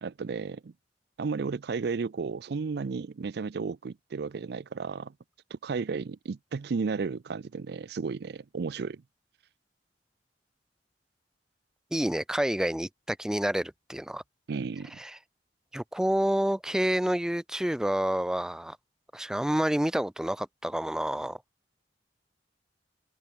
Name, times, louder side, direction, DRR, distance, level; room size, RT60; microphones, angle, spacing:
voice 1, 0.0-0.7 1.2-5.1 5.5-9.0 14.5-15.0, right 5 dB, 65° right, 0.4 m, -33 dB
voice 2, 11.9-14.2 15.0-15.2 15.7-18.8 19.1-21.4, right 1 dB, 5° right, 0.3 m, -28 dB
open air
head